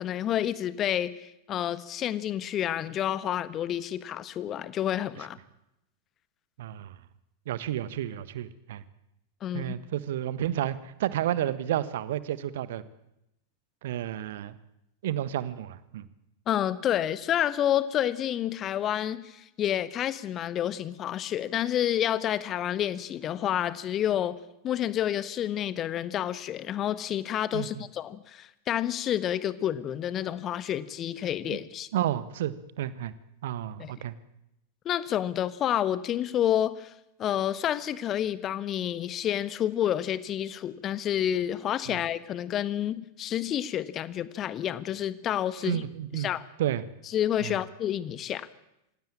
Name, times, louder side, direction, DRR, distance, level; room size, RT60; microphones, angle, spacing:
voice 1, 0.0-5.4 9.4-9.8 16.5-24.4 24.6-31.9 33.8-33.9 34.8-36.9 37.2-45.8 46.1-46.4 47.1-48.5, left 11 dB, 30° left, 15 dB, 1.4 m, -29 dB
voice 2, 6.6-7.0 7.5-8.8 9.5-12.8 13.8-14.6 15.0-16.0 27.5-27.8 31.5-31.6 31.9-33.1 33.4-34.1 41.9-42.0 45.6-46.3 46.6-46.9 47.4-47.6, right 12 dB, 55° right, 16 dB, 1.3 m, -31 dB
26.5 x 16.5 x 8.9 m, 0.86 s
figure-of-eight pair, 90°, 0 cm